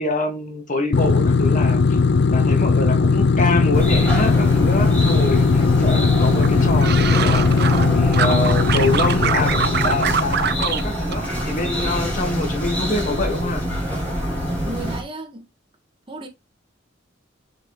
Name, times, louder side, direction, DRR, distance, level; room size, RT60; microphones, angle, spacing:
voice 1, 0.0-2.0 2.3-9.5 9.8-13.6, left 2 dB, 40° left, 2.1 m, -25 dB
sound 1, 0.9-10.7, left 4 dB, 60° left, 0.4 m, -18 dB
sound 2, 3.7-15.0, equal, 10° left, 5.1 m, -25 dB
sound 3, 6.4-7.9 8.1-10.8 11.1-11.9 12.2-12.6, right 7 dB, 55° right, 0.7 m, -24 dB
voice 2, 14.6-15.5 16.1-16.3, right 2 dB, 25° right, 1.7 m, -33 dB
7.1 x 6.9 x 3.2 m
head